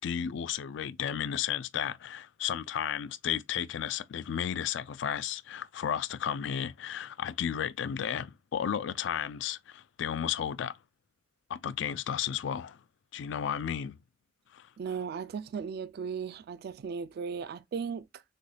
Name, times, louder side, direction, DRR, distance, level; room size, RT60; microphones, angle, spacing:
voice 1, 0.0-10.8 11.5-12.8 13.1-14.0 14.5-14.7, left 9 dB, 65° left, 0.4 m, -33 dB
voice 2, 14.8-18.2, right 6 dB, 55° right, 0.3 m, -36 dB
6.5 x 2.3 x 3.2 m
head